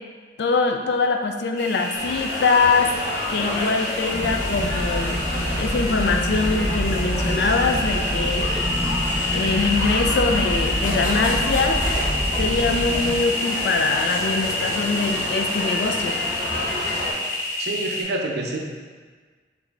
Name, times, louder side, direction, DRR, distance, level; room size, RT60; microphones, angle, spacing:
voice 1, 0.4-2.9 3.3-5.2 5.5-8.5 9.3-11.8 12.4-16.2, left 4 dB, 70° left, 5 dB, 0.4 m, -23 dB
sound 1, 1.6-18.0, left 2 dB, 15° left, 0.9 m, -28 dB
sound 2, 1.9-17.1, left 1 dB, 90° left, 0.9 m, -31 dB
sound 3, 4.1-13.2, equal, 45° left, 1.2 m, -27 dB
voice 2, 17.6-18.6, right 2 dB, 65° right, 1 dB, 0.5 m, -27 dB
3.9 x 3.2 x 3.4 m, 1.5 s
head